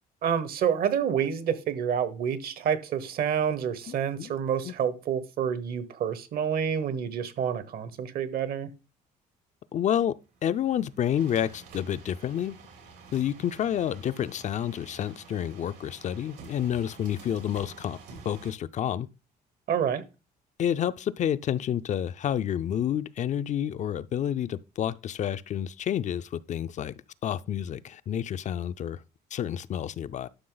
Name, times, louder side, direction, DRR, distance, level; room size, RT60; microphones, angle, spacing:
voice 1, 0.2-8.7 19.7-20.0, right 8 dB, 65° right, 1.2 m, -28 dB
voice 2, 3.9-4.3 4.6-4.7 9.7-12.6 13.1-18.0 18.2-19.1 20.6-26.9 27.2-29.0 29.3-30.3, left 10 dB, 45° left, 0.5 m, -29 dB
sound 1, 10.3-18.5, right 4 dB, 85° right, 3.2 m, -49 dB
11.5 x 5.8 x 3.9 m
cardioid pair, 110°, 17 cm